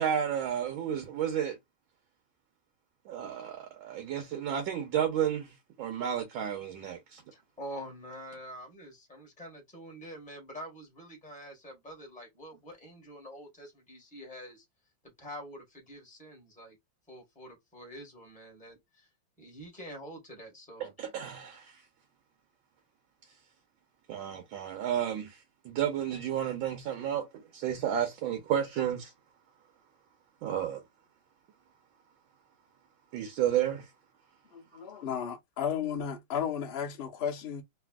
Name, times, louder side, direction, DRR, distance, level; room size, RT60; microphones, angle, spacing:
voice 1, 0.0-1.6 3.0-7.2 20.8-21.8 24.1-29.1 30.4-30.8 33.1-33.9, right 9 dB, 75° right, 1.5 m, -32 dB
voice 2, 7.3-14.6 15.0-16.8 17.1-19.1 19.4-20.9, equal, 5° left, 1.1 m, -46 dB
voice 3, 34.5-37.6, left 8 dB, 80° left, 0.5 m, -34 dB
3.4 x 2.5 x 2.3 m
omnidirectional pair, 2.2 m